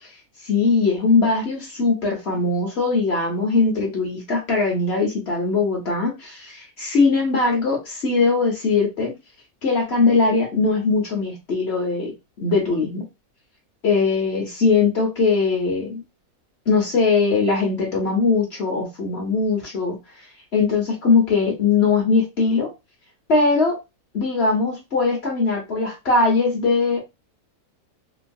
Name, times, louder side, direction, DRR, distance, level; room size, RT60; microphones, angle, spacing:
voice 1, 0.4-9.1 9.6-12.1 12.4-13.0 13.8-16.0 16.7-20.0 20.5-22.7 23.3-23.8 24.1-27.0, left 4 dB, 45° left, 1.2 m, -20 dB
3.1 x 2.8 x 2.6 m
omnidirectional pair, 1.7 m